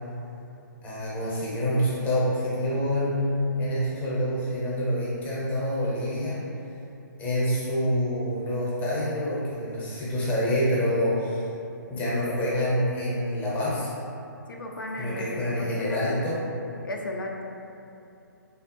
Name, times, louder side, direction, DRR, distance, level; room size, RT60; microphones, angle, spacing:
voice 1, 0.8-6.4 7.2-11.4 11.9-13.9 15.0-16.4, equal, 15° left, -8 dB, 0.7 m, -27 dB
voice 2, 14.5-16.2 16.8-17.5, left 1 dB, 85° left, 0 dB, 0.4 m, -35 dB
3.2 x 2.0 x 2.9 m, 2.7 s
figure-of-eight pair, 135°, 11 cm